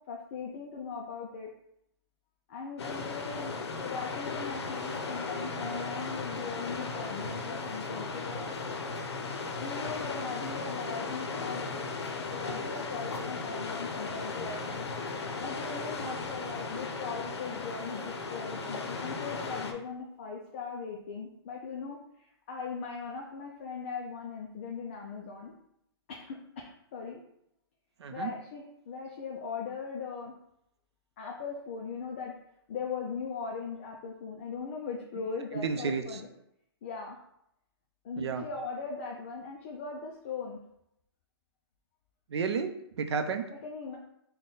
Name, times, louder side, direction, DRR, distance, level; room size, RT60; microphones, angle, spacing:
voice 1, 0.1-1.5 2.5-3.5 3.8-8.4 9.6-11.6 12.3-14.9 15.4-25.5 26.1-27.2 28.1-30.3 31.2-32.3 32.7-36.3 36.8-37.2 38.0-40.6 43.6-44.0, left 5 dB, 25° left, -1 dB, 0.3 m, -39 dB
sound 1, 2.8-19.7, left 4 dB, 75° left, 0.6 m, -36 dB
voice 2, 28.0-28.3 35.5-36.2 38.2-38.4 42.3-43.4, right 5 dB, 80° right, 7 dB, 0.5 m, -32 dB
3.9 x 2.2 x 3.8 m, 0.77 s
hypercardioid pair, 165°, 14 cm